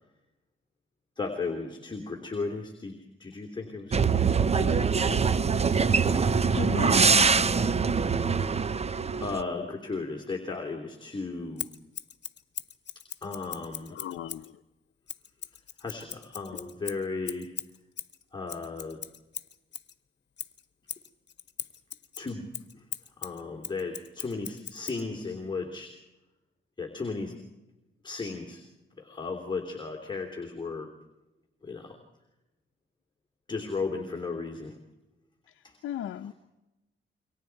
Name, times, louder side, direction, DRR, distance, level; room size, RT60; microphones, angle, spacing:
voice 1, 1.2-5.3 9.2-11.7 13.2-14.0 15.8-17.5 18.3-19.0 22.2-22.5 22.7-22.8 23.2-25.9 26.8-27.4 28.0-28.6 29.0-30.9 31.6-32.0 33.5-34.7 35.6-35.8 36.2-36.3, left 4 dB, 20° left, 1 dB, 3.0 m, -35 dB
sound 1, 3.9-9.4, right 5 dB, 30° right, 0.7 m, -23 dB
voice 2, 6.5-7.6 13.9-14.5 35.8-36.3, left 10 dB, 85° left, 3 dB, 0.8 m, -36 dB
Scissors, 11.6-14.5 15.1-19.9 20.4-25.0, left 8 dB, 55° left, 1.4 m, -40 dB
29.0 x 24.0 x 4.7 m, 1.0 s
cardioid pair, 100°, 21 cm